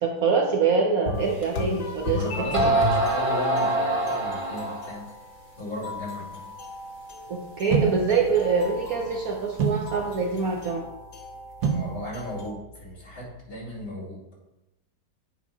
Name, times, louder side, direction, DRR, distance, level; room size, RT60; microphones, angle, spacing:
voice 1, 0.0-2.2 2.5-2.6 7.3-10.8, right 5 dB, 60° right, 0 dB, 1.1 m, -24 dB
sound 1, 1.1-12.5, left 2 dB, 60° left, 1.7 m, -36 dB
sound 2, 1.4-1.5 2.2-2.3 2.5-5.0, right 2 dB, 20° right, 1.3 m, -24 dB
voice 2, 2.1-5.1 5.6-6.5 11.6-14.2, left 1 dB, 35° left, -3 dB, 2.5 m, -36 dB
sound 3, 7.7-13.8, right 5 dB, 85° right, 1.6 m, -32 dB
9.2 x 4.0 x 4.8 m, 0.94 s
omnidirectional pair, 2.0 m